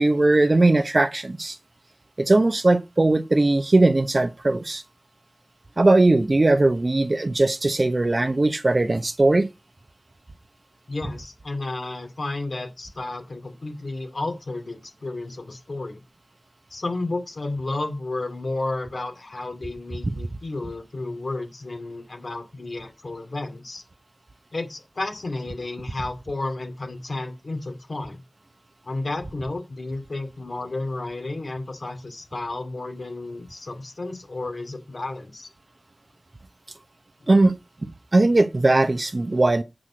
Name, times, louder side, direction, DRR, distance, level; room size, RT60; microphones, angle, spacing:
voice 1, 0.0-1.6 2.2-4.8 5.8-9.5 37.3-37.6 38.1-39.6, right 2 dB, 55° right, 0.9 m, -19 dB
voice 2, 10.9-16.0 16.7-23.8 24.5-28.2 28.8-35.5, left 2 dB, 90° left, 2.4 m, -32 dB
8.8 x 6.3 x 5.0 m
wide cardioid pair, 50°, 0 cm